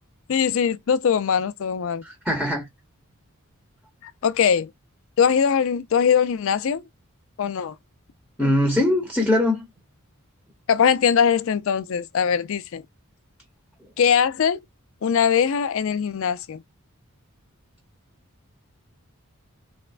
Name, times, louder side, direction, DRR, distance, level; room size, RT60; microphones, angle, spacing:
voice 1, 0.3-2.0 4.0-4.7 5.2-6.8 7.4-7.7 8.4-8.5 10.7-12.8 14.0-14.6 15.0-16.6, left 7 dB, 60° left, 0.4 m, -21 dB
voice 2, 2.0-2.6 8.4-9.6, left 1 dB, ahead, 1.0 m, -21 dB
4.1 x 2.1 x 2.3 m
head